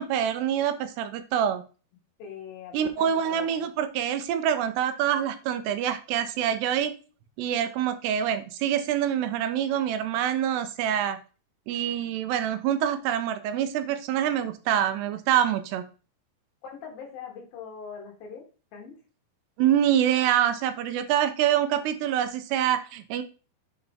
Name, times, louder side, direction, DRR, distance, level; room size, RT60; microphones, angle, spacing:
voice 1, 0.0-1.6 2.7-6.9 7.4-11.2 11.7-15.8 19.6-23.2, right 10 dB, 85° right, 10 dB, 2.7 m, -26 dB
voice 2, 2.2-3.6 16.6-18.4 18.7-18.9, left 6 dB, 65° left, 0 dB, 3.1 m, -42 dB
8.0 x 3.8 x 3.4 m, 0.35 s
omnidirectional pair, 4.8 m